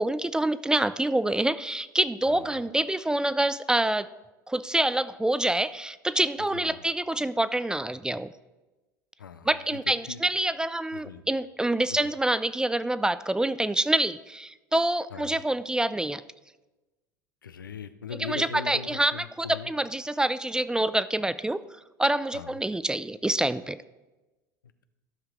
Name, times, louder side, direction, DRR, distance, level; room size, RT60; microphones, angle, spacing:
voice 1, 0.0-4.1 4.5-8.3 9.5-16.2 18.2-21.6 22.0-23.8, right 1 dB, 5° right, 14 dB, 0.3 m, -26 dB
voice 2, 2.3-2.6 6.5-6.8 9.2-9.6 10.0-10.2 10.9-11.2 11.9-12.0 15.1-15.4 17.4-19.7 22.3-22.6, left 6 dB, 90° left, 12 dB, 0.5 m, -40 dB
13.0 x 5.7 x 3.7 m, 1.1 s
hypercardioid pair, 75°, 11 cm